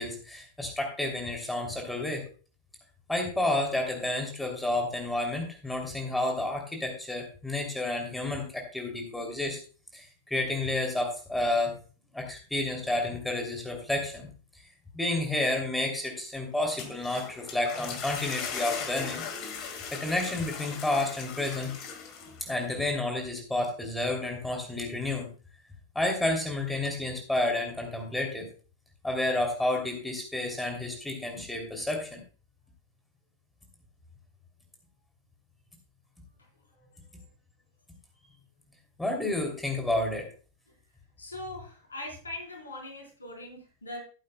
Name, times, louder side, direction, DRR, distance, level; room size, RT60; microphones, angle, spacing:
voice 1, 0.0-2.2 3.1-9.6 9.9-11.8 12.1-14.3 14.9-19.2 19.6-21.7 22.5-25.3 25.9-28.5 29.0-32.2 39.0-40.3, left 2 dB, 5° left, 2 dB, 2.9 m, -30 dB
sound 1, 16.6-22.6, left 6 dB, 40° left, 1.8 m, -38 dB
voice 2, 36.4-36.8 37.2-37.3 40.7-40.8 41.2-44.0, left 1 dB, 75° left, 1 dB, 3.9 m, -42 dB
16.0 x 8.6 x 2.2 m, 0.36 s
figure-of-eight pair, 90°, 0 cm